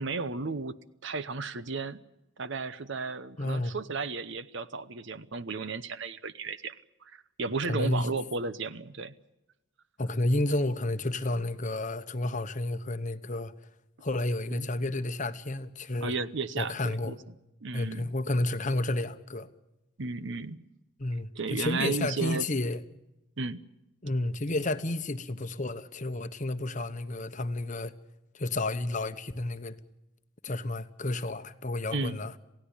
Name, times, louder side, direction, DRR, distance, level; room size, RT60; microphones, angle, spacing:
voice 1, 0.0-2.0 2.4-6.8 7.0-9.1 14.5-14.7 16.0-17.2 17.6-18.1 20.0-20.6 21.3-22.5 23.4-23.6 31.9-32.2, right 4 dB, 55° right, 0.9 m, -34 dB
voice 2, 3.4-3.8 7.7-8.1 10.0-13.5 14.0-16.1 16.6-17.2 17.7-19.5 21.0-22.8 24.0-27.9 28.3-29.8 30.4-32.3, left 2 dB, 35° left, 1.0 m, -31 dB
27.5 x 16.5 x 8.5 m
head